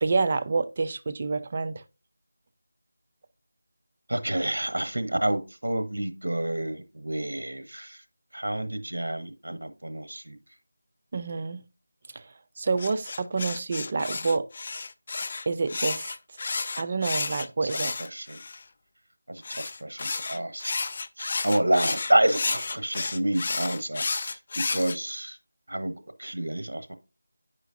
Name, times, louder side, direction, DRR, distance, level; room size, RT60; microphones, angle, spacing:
voice 1, 0.0-1.8 11.1-11.6 12.1-12.2 12.6-14.5 15.5-16.1 16.8-17.9, right 4 dB, 35° right, 0.4 m, -28 dB
voice 2, 4.1-8.0 8.3-10.4 16.5-16.8 17.6-17.7 18.0-18.4 19.3-20.7 21.2-25.4 25.7-26.9, right 1 dB, 80° right, 1.0 m, -29 dB
sound 1, 12.8-18.6 19.4-25.0, left 3 dB, 40° left, 0.3 m, -32 dB
9.0 x 5.0 x 2.5 m
figure-of-eight pair, 170°, 0 cm